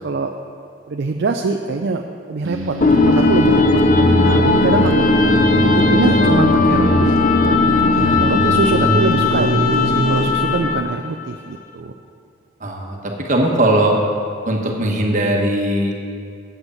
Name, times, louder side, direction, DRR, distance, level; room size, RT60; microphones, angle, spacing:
voice 1, 0.0-0.3 0.9-2.0 2.3-5.0 5.6-7.2 7.4-7.6 7.9-11.9, right 4 dB, 55° right, 4 dB, 0.4 m, -23 dB
sound 1, 2.4-10.3, right 1 dB, 90° right, 0.9 m, -22 dB
sound 2, 2.8-11.0, left 3 dB, 40° left, 0.6 m, -16 dB
voice 2, 12.6-14.0 14.4-16.1, right 1 dB, 40° right, 0 dB, 1.3 m, -19 dB
7.9 x 7.9 x 7.1 m, 2.4 s
head